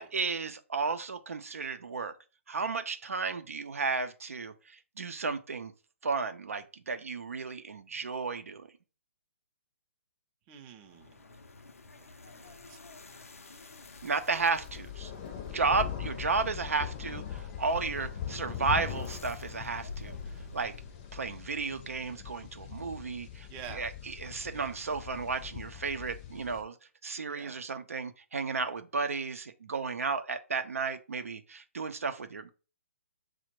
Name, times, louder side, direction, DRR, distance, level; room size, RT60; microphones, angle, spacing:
voice 1, 0.0-2.1 2.5-5.7 6.0-8.7 14.0-15.1 15.4-20.2 20.5-20.7 21.1-23.5 23.7-26.8 27.0-32.5, right 4 dB, 70° right, 0.5 m, -33 dB
voice 2, 10.5-11.2 12.0-12.8 23.5-23.9 24.5-24.8 27.3-27.6, right 8 dB, 25° right, 0.5 m, -48 dB
sound 1, 10.8-21.2, left 3 dB, 75° left, 0.5 m, -49 dB
sound 2, 13.9-26.6, left 10 dB, 30° left, 0.6 m, -41 dB
6.2 x 2.1 x 2.9 m
figure-of-eight pair, 130°, 8 cm